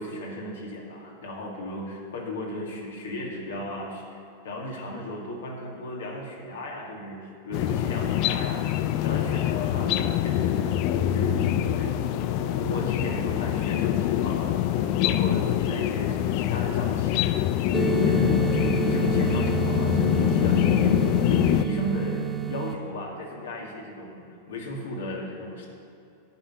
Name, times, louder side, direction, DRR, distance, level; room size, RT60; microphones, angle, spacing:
voice 1, 0.0-4.2 4.4-12.2 12.5-25.7, left 1 dB, 65° left, -1 dB, 2.2 m, -35 dB
sound 1, 7.5-21.6, left 12 dB, 45° left, 0.4 m, -24 dB
sound 2, 9.1-15.9, right 2 dB, 85° right, 1.4 m, -41 dB
sound 3, 17.7-22.7, right 9 dB, 15° right, 0.7 m, -29 dB
12.5 x 5.4 x 8.3 m, 2.6 s
figure-of-eight pair, 90°, 0 cm